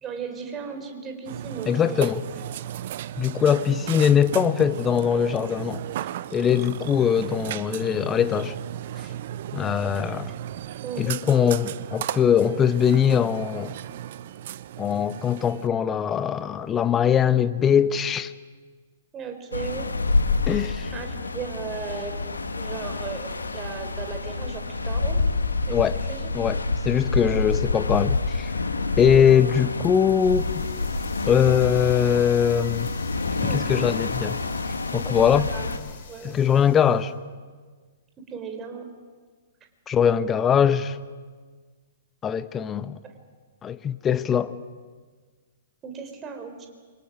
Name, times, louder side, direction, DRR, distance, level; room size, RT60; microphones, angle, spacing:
voice 1, 0.0-2.2 9.9-10.2 10.8-11.5 19.1-19.9 20.7-22.2 22.5-25.2 25.7-26.3 27.2-27.4 29.1-29.5 33.3-33.7 34.9-35.7 36.1-36.4 38.3-38.9 45.8-46.7, right 6 dB, 20° right, 4.0 m, -36 dB
Burping eructation, 1.2-15.7, right 12 dB, 50° right, 0.7 m, -35 dB
voice 2, 1.7-2.2 3.2-5.9 6.3-8.6 9.5-10.3 11.0-13.8 14.8-18.3 20.5-20.9 25.7-26.0 26.3-28.5 29.0-30.6 31.3-32.9 33.5-34.4 34.9-35.5 36.2-37.1 39.9-41.0 42.2-43.0 43.6-44.6, left 8 dB, 20° left, 0.9 m, -21 dB
sound 1, 19.5-35.8, left 3 dB, 80° left, 1.8 m, -27 dB
sound 2, 29.9-37.1, left 8 dB, 50° left, 4.1 m, -47 dB
27.0 x 25.0 x 6.0 m
figure-of-eight pair, 115°, 0 cm